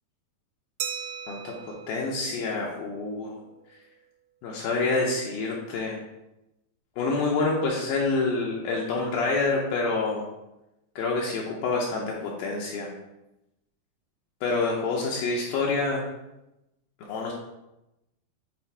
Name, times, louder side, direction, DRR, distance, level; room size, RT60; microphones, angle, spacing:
Glass, 0.8-3.3, right 8 dB, 85° right, 2.2 m, -38 dB
voice 1, 1.9-3.4 4.4-6.0 7.0-10.3 11.0-12.9 14.4-16.0 17.1-17.3, left 3 dB, 75° left, -2 dB, 2.3 m, -27 dB
8.1 x 3.3 x 4.6 m, 0.92 s
omnidirectional pair, 4.7 m